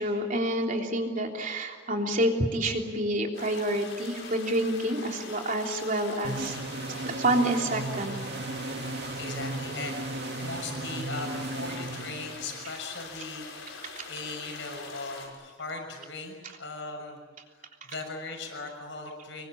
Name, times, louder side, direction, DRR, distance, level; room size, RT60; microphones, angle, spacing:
voice 1, 0.0-6.6 7.0-8.1 14.0-14.1, right 1 dB, 45° right, 2 dB, 3.4 m, -28 dB
sound 1, 3.3-15.3, left 4 dB, 90° left, 5.8 m, -44 dB
sound 2, 6.2-12.7, right 2 dB, 60° right, 2.2 m, -35 dB
voice 2, 9.2-17.2 17.8-19.5, left 3 dB, 65° left, 4 dB, 6.3 m, -39 dB
26.5 x 22.5 x 8.7 m, 1.5 s
head